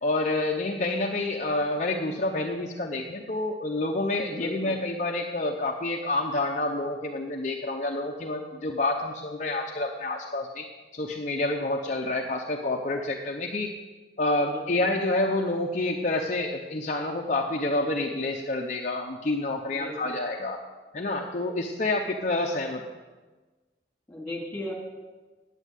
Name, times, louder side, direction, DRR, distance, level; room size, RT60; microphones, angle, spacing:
voice 1, 0.0-10.7 10.9-13.7 14.2-20.6 20.9-22.8, left 2 dB, 45° left, 1 dB, 0.8 m, -28 dB
voice 2, 4.3-4.8 14.4-14.9 19.7-20.2 24.1-24.7, left 1 dB, 10° left, -3 dB, 3.5 m, -37 dB
9.4 x 9.0 x 8.2 m, 1.3 s
head